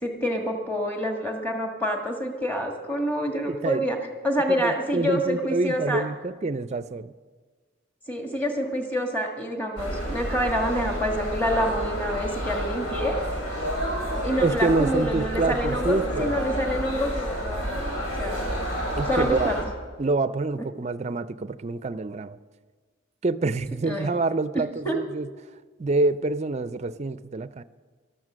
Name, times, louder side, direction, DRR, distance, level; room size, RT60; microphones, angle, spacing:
voice 1, 0.0-4.0 4.2-6.0 8.1-13.2 14.2-17.9 18.2-18.5 19.1-19.6 23.8-24.2 24.5-24.9, equal, 10° left, 1 dB, 1.6 m, -27 dB
voice 2, 3.5-3.9 4.5-7.1 14.4-16.4 19.0-19.6 20.0-22.4 23.2-25.3 25.8-27.6, right 3 dB, 30° right, 14 dB, 0.4 m, -26 dB
sound 1, 9.8-19.6, equal, 90° left, 6.0 m, -30 dB
14.0 x 12.5 x 6.2 m, 1.5 s
head